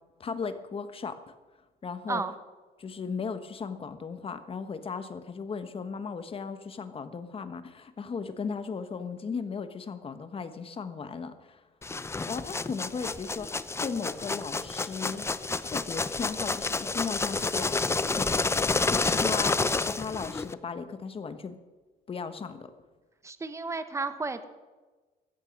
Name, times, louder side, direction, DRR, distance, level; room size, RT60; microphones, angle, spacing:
voice 1, 0.2-1.3 1.8-2.2 2.8-11.6 12.2-15.3 15.6-18.3 18.9-21.6 22.1-22.7, left 5 dB, 35° left, 10 dB, 1.4 m, -36 dB
sound 1, 11.8-20.5, left 3 dB, 15° left, 0.6 m, -29 dB
voice 2, 23.2-24.4, right 3 dB, 15° right, 11 dB, 1.1 m, -32 dB
15.0 x 14.0 x 5.4 m, 1.3 s
cardioid pair, 110°, 17 cm